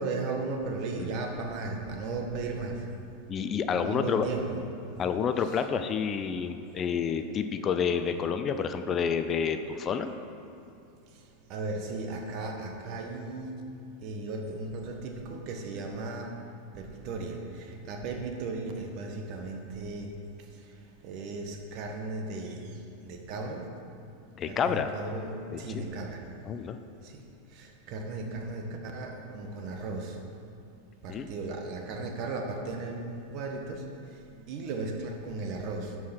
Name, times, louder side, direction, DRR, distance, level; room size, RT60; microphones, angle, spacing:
voice 1, 0.0-2.9 3.7-4.6 11.1-13.6 14.0-16.4 16.7-23.7 24.4-26.3 27.0-30.2 31.0-36.0, right 3 dB, 50° right, 3 dB, 1.3 m, -36 dB
voice 2, 3.3-4.3 5.0-10.1 24.4-24.9 25.5-25.6 26.5-26.8 31.1-31.3, left 7 dB, 35° left, 9 dB, 0.5 m, -29 dB
11.0 x 4.8 x 6.0 m, 2.6 s
hypercardioid pair, 95°, 0 cm